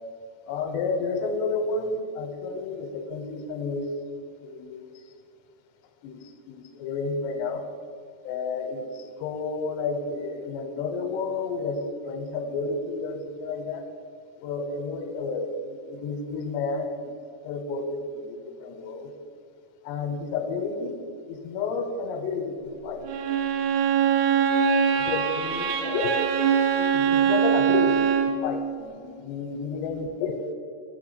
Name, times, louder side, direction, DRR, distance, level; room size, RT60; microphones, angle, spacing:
voice 1, 0.5-3.9 4.4-4.9 6.0-7.6 8.2-13.8 14.4-17.1 17.4-19.1 19.8-21.0 21.3-23.1 24.9-26.1 26.5-30.5, left 4 dB, 85° left, 6 dB, 2.8 m, -31 dB
Bowed string instrument, 23.1-28.4, right 7 dB, 80° right, 2.5 m, -23 dB
6.7 x 6.2 x 6.6 m, 2.2 s
omnidirectional pair, 4.9 m